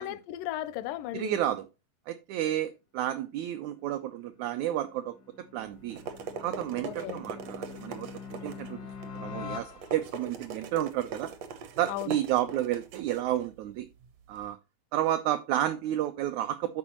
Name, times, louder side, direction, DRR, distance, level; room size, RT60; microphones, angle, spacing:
voice 1, 0.0-1.4 6.9-7.2 11.9-12.2, left 13 dB, 85° left, 2.2 m, -35 dB
voice 2, 1.1-1.7 2.1-5.1 5.5-6.0 6.4-8.8 9.1-11.3 11.8-13.8 14.3-14.6 14.9-16.8, right 12 dB, 85° right, 1.6 m, -31 dB
sound 1, 3.9-10.3, left 6 dB, 70° left, 0.9 m, -44 dB
sound 2, 5.6-14.5, right 5 dB, 70° right, 1.6 m, -42 dB
12.5 x 4.4 x 3.0 m
omnidirectional pair, 3.8 m